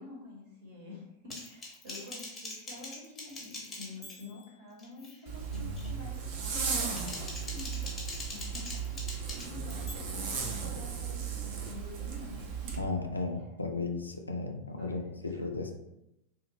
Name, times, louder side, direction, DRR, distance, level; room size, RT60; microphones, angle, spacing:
voice 1, 0.0-7.7 8.3-12.8 13.3-13.5 14.8-15.5, left 2 dB, 60° right, -4 dB, 0.8 m, -48 dB
Typing, 1.3-4.5 4.8-5.2 5.5-5.9 6.7-9.9, left 2 dB, 20° left, 0.6 m, -43 dB
Zipper (clothing), 5.3-12.8, right 6 dB, 45° right, 0.5 m, -36 dB
voice 2, 5.5-6.0 12.8-15.7, left 3 dB, 80° left, 4 dB, 0.3 m, -35 dB
2.4 x 2.0 x 3.0 m, 0.86 s
figure-of-eight pair, 90°, 0 cm